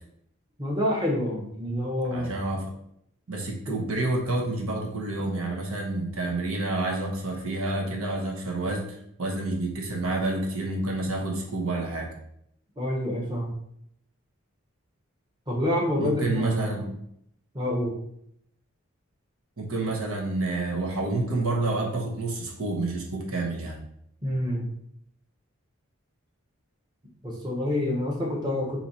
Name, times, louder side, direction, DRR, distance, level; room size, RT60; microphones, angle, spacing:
voice 1, 0.6-2.3 3.7-3.8 12.8-13.5 15.5-16.9 17.5-17.9 24.2-24.7 27.2-28.8, left 1 dB, 20° right, -3 dB, 0.9 m, -27 dB
voice 2, 2.1-2.7 3.3-12.1 16.0-16.9 19.6-23.8, right 2 dB, 85° right, 0 dB, 1.0 m, -29 dB
4.2 x 2.8 x 4.1 m, 0.73 s
head